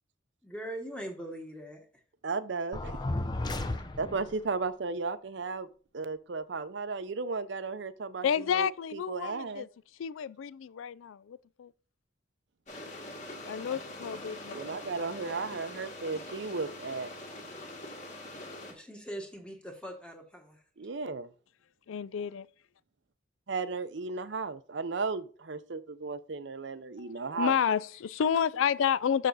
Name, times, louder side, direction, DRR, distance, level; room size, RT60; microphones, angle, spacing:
voice 1, 0.4-1.8 18.7-20.6 27.3-27.6 28.2-28.4 28.7-28.8, right 1 dB, 5° left, 1.2 m, -42 dB
voice 2, 2.2-3.1 3.6-3.7 4.0-5.7 5.9-9.7 14.5-17.1 20.8-21.3 23.5-27.6, right 4 dB, 60° right, 0.6 m, -35 dB
sound 1, 2.7-4.4, left 2 dB, 20° left, 0.5 m, -34 dB
voice 3, 8.2-9.7 10.0-11.7 13.5-14.6 21.9-22.5 27.4-29.3, left 8 dB, 80° left, 0.3 m, -30 dB
sound 2, 12.7-18.7, left 1 dB, 35° left, 1.8 m, -43 dB
6.7 x 6.1 x 4.0 m
head